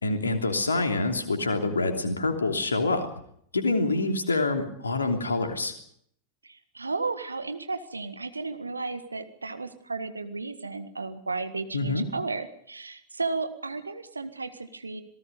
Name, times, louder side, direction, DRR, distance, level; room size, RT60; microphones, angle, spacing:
voice 1, 0.0-3.1 3.5-5.7 11.7-12.0, left 3 dB, 75° left, 4 dB, 3.1 m, -26 dB
voice 2, 6.4-15.0, right 3 dB, 80° right, 10 dB, 1.7 m, -34 dB
27.0 x 19.0 x 5.4 m, 0.68 s
figure-of-eight pair, 90°, 0 cm